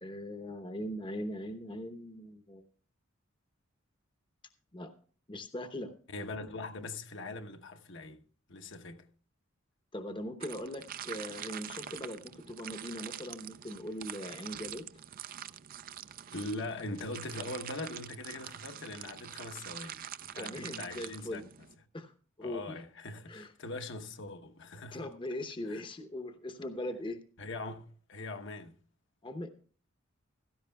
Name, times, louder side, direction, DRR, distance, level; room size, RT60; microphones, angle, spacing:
voice 1, 0.0-2.6 4.7-4.9 5.3-5.9 9.9-14.8 20.4-21.5 21.9-22.1 22.4-22.8 23.3-23.5 24.9-27.2 29.2-29.5, left 1 dB, 25° left, 0.8 m, -40 dB
voice 2, 6.1-8.2 8.5-9.0 16.3-20.0 20.3-21.4 22.4-25.1 25.7-25.8 27.4-28.8, left 2 dB, 60° left, 1.0 m, -41 dB
sound 1, 10.4-21.8, right 10 dB, 45° right, 0.4 m, -45 dB
16.0 x 13.0 x 2.3 m
head